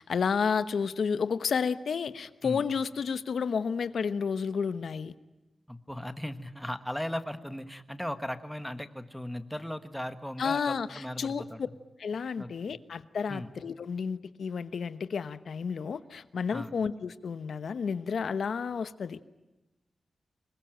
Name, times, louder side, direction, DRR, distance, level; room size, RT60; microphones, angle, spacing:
voice 1, 0.0-5.1 10.4-11.4 12.0-19.2, left 6 dB, 70° left, 14 dB, 1.0 m, -31 dB
voice 2, 5.7-11.6 12.4-12.8 13.3-13.5 16.5-16.7, equal, 5° left, 10 dB, 1.4 m, -37 dB
25.5 x 21.5 x 9.0 m, 1.0 s
wide cardioid pair, 140°, 0 cm